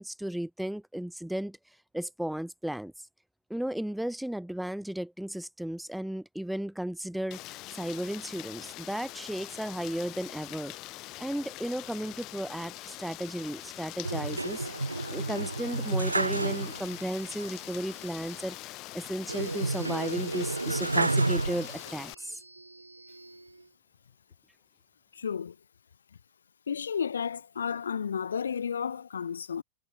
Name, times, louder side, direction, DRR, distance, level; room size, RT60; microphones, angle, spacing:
voice 1, 0.0-1.6 1.9-2.9 3.5-10.7 11.2-14.7 15.1-18.6 18.9-22.4, right 1 dB, ahead, 1.9 m, -35 dB
Rain, 7.3-22.1, left 19 dB, 40° left, 4.6 m, -44 dB
sound 1, 14.0-17.1 17.4-17.5 19.3-22.0 22.6-23.4, right 2 dB, 85° right, 0.9 m, -30 dB
voice 2, 25.1-25.5 26.7-29.6, left 7 dB, 70° left, 0.8 m, -32 dB
figure-of-eight pair, 90°, 0 cm